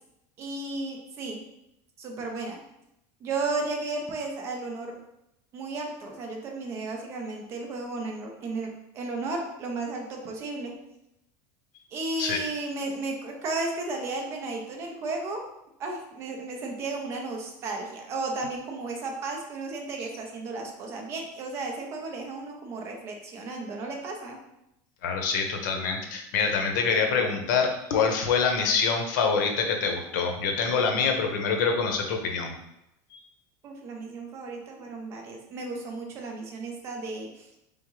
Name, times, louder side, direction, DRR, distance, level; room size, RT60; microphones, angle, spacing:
voice 1, 0.4-1.4 2.0-2.6 3.2-5.0 5.5-10.7 11.9-15.4 15.8-24.4 33.6-37.5, right 3 dB, 25° right, 2 dB, 0.6 m, -34 dB
voice 2, 25.0-32.5 33.1-33.2, left 5 dB, 90° left, 4 dB, 0.7 m, -25 dB
3.7 x 3.6 x 3.1 m, 0.84 s
cardioid pair, 180°, 10 cm